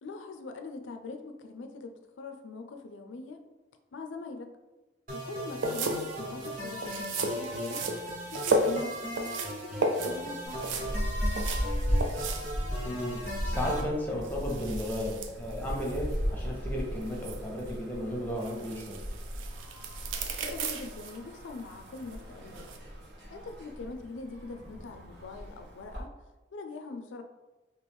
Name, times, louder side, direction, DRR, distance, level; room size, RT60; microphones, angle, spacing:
voice 1, 0.0-3.4 3.9-4.5 5.1-7.9 8.3-10.7 20.4-22.7 23.3-26.1 26.5-27.2, left 3 dB, 85° left, 6 dB, 0.4 m, -43 dB
sound 1, 5.1-13.8, equal, 45° right, 1.0 m, -38 dB
sound 2, 5.5-22.8, right 2 dB, 90° right, 0.4 m, -36 dB
sound 3, 10.4-26.0, equal, 70° right, 0.9 m, -36 dB
voice 2, 12.8-19.0, equal, 10° left, -2 dB, 0.7 m, -34 dB
3.1 x 2.8 x 3.5 m, 1.1 s
head